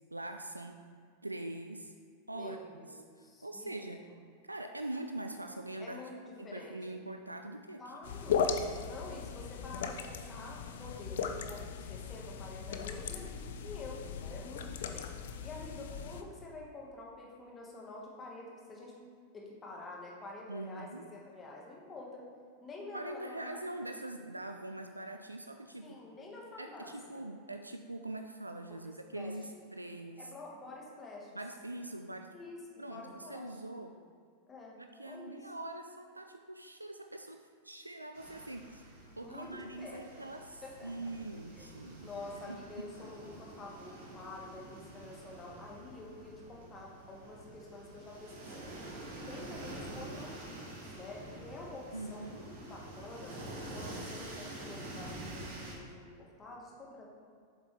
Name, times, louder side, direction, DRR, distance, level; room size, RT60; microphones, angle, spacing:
voice 1, 0.1-0.8 1.2-1.9 2.3-4.0 4.4-6.0 6.4-7.8 20.5-21.1 22.9-26.0 26.6-30.3 31.3-32.3 32.8-34.0 34.8-38.8 39.2-42.9 51.9-52.5, right 1 dB, 85° right, 6 dB, 0.4 m, -43 dB
voice 2, 2.3-3.9 5.8-6.8 7.8-8.5 8.9-15.1 15.4-18.9 19.3-22.3 22.6-23.6 25.8-27.2 28.8-29.6 30.2-31.3 32.3-33.5 34.5-34.8 35.0-35.5 39.2-40.3 40.6-40.9 41.5-41.7 42.0-48.7 49.3-53.4 53.8-57.1, left 2 dB, 20° left, -2 dB, 1.8 m, -48 dB
sound 1, 8.0-16.2, left 6 dB, 60° left, 0.5 m, -37 dB
sound 2, 38.1-55.7, right 1 dB, 60° right, 2.2 m, -47 dB
8.0 x 7.2 x 3.5 m, 2.1 s
figure-of-eight pair, 90°, 0 cm